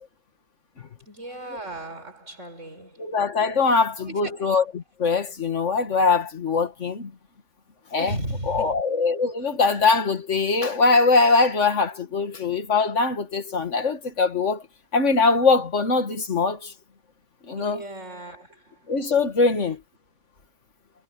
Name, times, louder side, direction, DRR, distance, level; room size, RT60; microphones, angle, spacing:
voice 1, 1.1-3.2 3.7-4.5 8.0-8.8 17.5-18.9 19.5-19.7, right 1 dB, 85° right, 7.4 m, -36 dB
voice 2, 3.0-7.1 7.9-8.1 8.5-14.6 14.9-16.7 17.5-17.8 18.9-19.8, left 4 dB, 75° left, 2.2 m, -22 dB
omnidirectional pair, 1.3 m